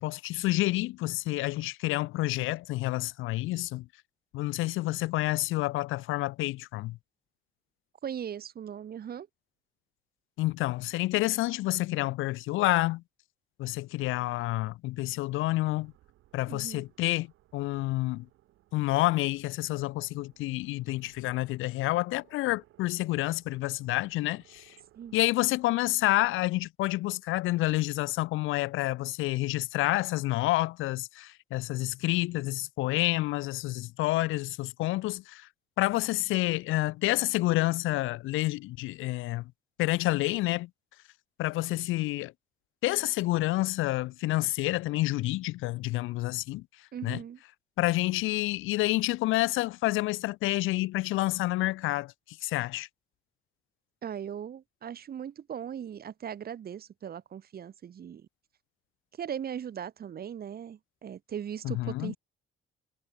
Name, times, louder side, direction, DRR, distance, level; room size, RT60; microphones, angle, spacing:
voice 1, 0.0-3.9 4.3-7.0 10.4-13.0 13.6-15.9 16.3-18.3 18.7-24.8 25.1-35.5 35.8-39.5 39.8-40.7 41.4-42.3 42.8-46.7 47.0-47.2 47.8-52.9 61.6-62.2, left 18 dB, 85° left, 0.5 m, -29 dB
voice 2, 8.0-9.3 16.5-16.8 25.0-25.2 46.9-47.4 54.0-58.3 59.2-62.2, right 9 dB, 50° right, 1.1 m, -39 dB
sound 1, 15.8-25.8, right 15 dB, 85° right, 3.1 m, -63 dB
cardioid pair, 90°, 20 cm